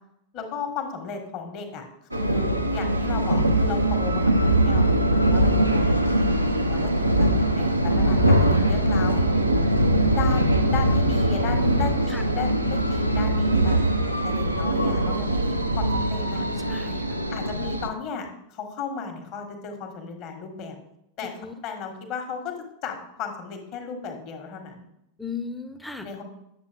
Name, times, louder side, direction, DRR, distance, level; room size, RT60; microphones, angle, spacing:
voice 1, 0.3-6.1 6.4-9.4 10.1-16.4 17.3-20.8 21.2-21.3 21.6-24.9 26.0-26.2, left 5 dB, 40° left, 4 dB, 1.6 m, -35 dB
sound 1, 2.1-17.9, right 1 dB, 85° right, 0.7 m, -22 dB
voice 2, 11.5-11.8 12.1-12.2 16.3-17.1 21.4-21.5 25.2-26.1, left 4 dB, 5° left, 8 dB, 0.8 m, -36 dB
9.8 x 7.1 x 3.5 m, 0.82 s
figure-of-eight pair, 90°, 0 cm